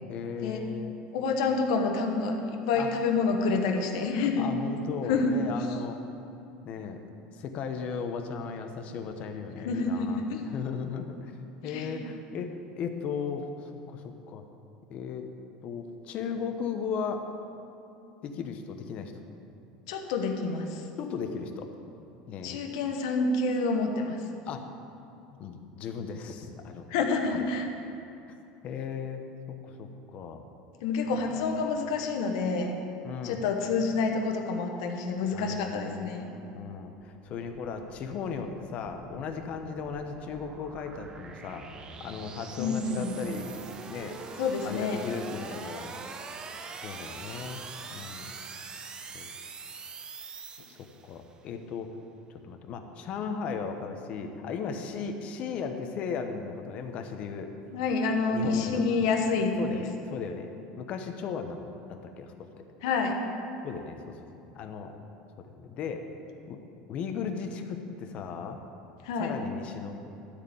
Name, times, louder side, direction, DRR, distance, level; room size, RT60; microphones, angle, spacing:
voice 1, 0.1-1.0 2.7-2.9 4.0-6.0 6.6-7.0 7.4-11.3 11.6-14.4 14.9-15.3 15.6-17.3 18.2-19.1 21.0-21.7 22.3-22.6 24.5-24.6 25.4-26.8 27.3-27.4 28.6-30.4 33.0-33.5 35.3-36.3 36.5-41.6 42.0-43.5 43.9-44.2 44.6-45.9 46.8-47.6 47.9-48.3 49.1-49.3 50.7-50.8 51.0-51.9 52.4-57.5 58.3-58.8 59.6-60.5 60.8-61.6 61.9-62.3 63.6-64.9 65.4-66.1 66.5-66.6 66.9-68.6 69.2-70.1, left 6 dB, 45° left, 5 dB, 0.9 m, -36 dB
voice 2, 1.1-4.5 5.1-5.4 9.6-10.4 11.6-12.1 19.9-20.8 22.4-24.2 26.9-27.7 30.8-32.8 33.2-36.3 42.6-43.2 44.4-45.0 57.7-59.8 62.8-63.2 69.0-69.4, left 4 dB, 80° left, 3 dB, 1.1 m, -28 dB
sound 1, 36.9-51.2, right 4 dB, 25° right, 0.7 m, -44 dB
13.0 x 4.4 x 8.4 m, 2.7 s
supercardioid pair, 140°, 3 cm